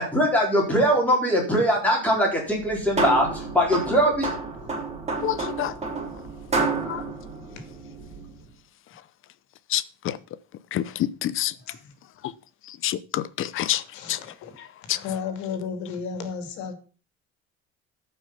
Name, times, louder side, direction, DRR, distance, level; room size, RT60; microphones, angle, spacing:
voice 1, 0.0-3.3 3.5-4.3, equal, 5° left, 4.3 m, -21 dB
sound 1, 2.5-8.4, right 3 dB, 20° right, 3.4 m, -30 dB
voice 2, 5.2-5.7 6.9-7.0 9.7-10.1 10.7-11.5 12.8-13.8 14.1-14.2 14.9-15.0, left 12 dB, 45° left, 0.7 m, -27 dB
voice 3, 13.9-14.5 14.9-16.7, left 6 dB, 75° left, 2.5 m, -33 dB
13.5 x 5.8 x 5.8 m
cardioid pair, 155°, 29 cm